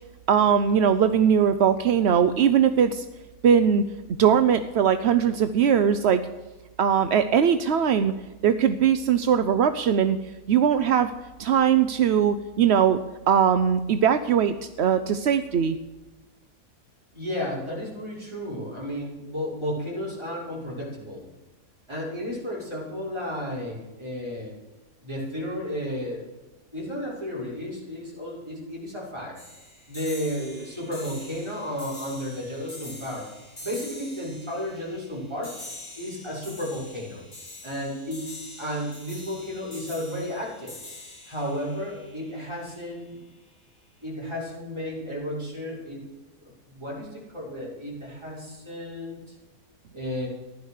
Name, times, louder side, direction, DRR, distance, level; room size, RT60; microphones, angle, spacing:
voice 1, 0.3-3.1 3.4-3.8 4.2-6.2 6.8-8.1 8.4-10.2 10.5-11.1 11.4-13.0 13.3-15.8, right 8 dB, 60° right, 10 dB, 0.7 m, -20 dB
voice 2, 17.1-21.3 21.9-24.5 25.0-26.2 26.7-29.3 29.9-33.3 33.6-35.5 35.9-37.2 37.6-40.8 41.3-43.2 44.0-46.0 46.7-49.2 49.9-50.3, equal, 15° right, -6 dB, 6.0 m, -33 dB
sound 1, 29.4-42.8, left 1 dB, 35° left, 6.2 m, -44 dB
15.0 x 11.0 x 6.5 m, 1.1 s
omnidirectional pair, 1.7 m